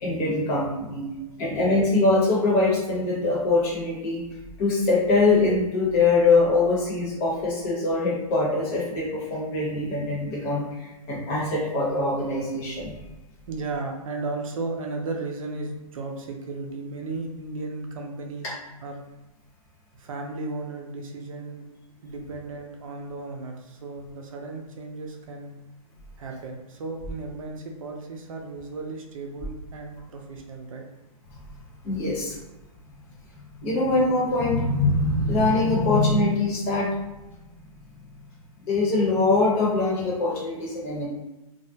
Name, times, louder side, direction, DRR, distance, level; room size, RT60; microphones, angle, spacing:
voice 1, 0.0-1.0 1.4-4.2 4.6-12.9 31.8-32.3 33.6-36.9 38.7-41.1, left 3 dB, 30° left, -5 dB, 0.9 m, -23 dB
voice 2, 13.5-18.6 18.8-19.0 19.9-21.7 22.0-25.5 26.2-30.8, right 3 dB, 65° right, 2 dB, 0.6 m, -35 dB
2.4 x 2.1 x 2.7 m, 1.0 s
hypercardioid pair, 150°, 19 cm